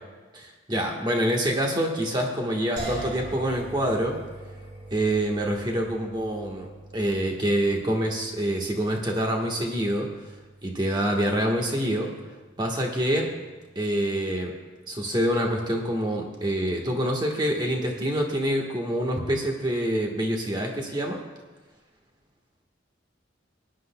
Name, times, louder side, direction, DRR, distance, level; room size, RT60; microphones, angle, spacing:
voice 1, 0.3-4.2 4.9-6.7 6.9-10.1 10.6-12.1 12.6-13.3 13.7-14.5 14.9-21.2, right 1 dB, 25° right, 0 dB, 1.3 m, -26 dB
sound 1, 2.8-15.8, right 2 dB, 50° right, 3.8 m, -43 dB
20.0 x 10.0 x 2.2 m, 1.3 s
head